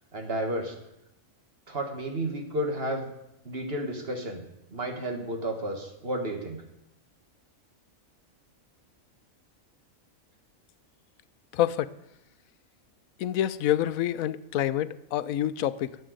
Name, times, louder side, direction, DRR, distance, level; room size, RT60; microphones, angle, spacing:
voice 1, 0.1-0.8 1.7-3.1 3.5-4.4 4.7-6.6, right 1 dB, 45° right, 4 dB, 2.0 m, -32 dB
voice 2, 11.5-11.9 13.2-16.0, left 12 dB, 85° left, 16 dB, 1.1 m, -27 dB
14.0 x 7.8 x 7.9 m, 0.86 s
omnidirectional pair, 1.4 m